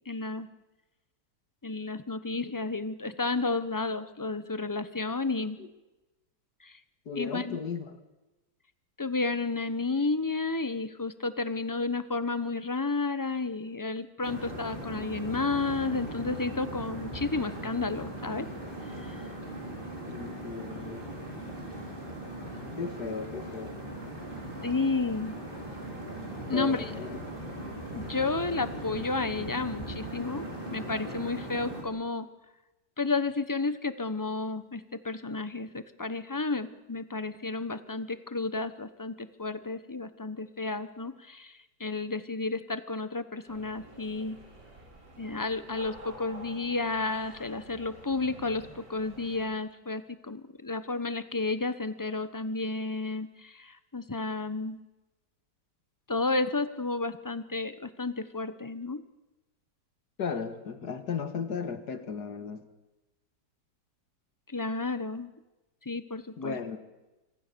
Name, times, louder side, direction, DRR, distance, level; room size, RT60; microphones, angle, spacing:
voice 1, 0.1-0.5 1.6-5.6 6.6-6.8 7.2-7.6 9.0-18.5 19.0-19.2 24.6-25.3 26.5-27.2 27.9-32.3 33.0-44.4 45.2-54.8 56.1-59.0 64.5-65.3 65.8-66.6, left 3 dB, 15° left, 12 dB, 0.7 m, -32 dB
voice 2, 5.4-5.7 7.1-8.0 20.1-21.1 22.8-23.7 26.5-27.2 60.2-62.6 66.4-66.8, left 5 dB, 70° left, 9 dB, 2.2 m, -35 dB
sound 1, 14.2-31.8, right 1 dB, 30° right, 5.7 m, -39 dB
sound 2, 43.5-49.5, right 2 dB, 85° right, 5.1 m, -49 dB
25.0 x 25.0 x 6.9 m, 1.1 s
omnidirectional pair, 1.8 m